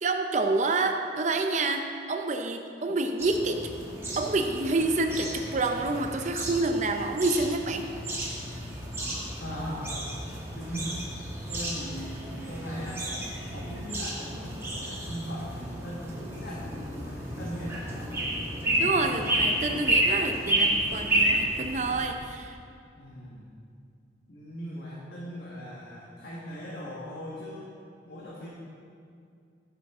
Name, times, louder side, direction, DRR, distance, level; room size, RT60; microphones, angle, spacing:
voice 1, 0.0-3.7 4.2-7.8 18.8-22.6, right 3 dB, 40° right, 5 dB, 0.6 m, -28 dB
sound 1, 3.2-22.1, right 1 dB, 15° right, 1.5 m, -31 dB
voice 2, 9.4-10.2 10.5-11.0 11.5-13.1 13.5-18.1 23.0-23.5 24.3-27.7 28.0-28.5, equal, 65° left, -6 dB, 1.4 m, -39 dB
14.5 x 7.2 x 3.6 m, 2.4 s
head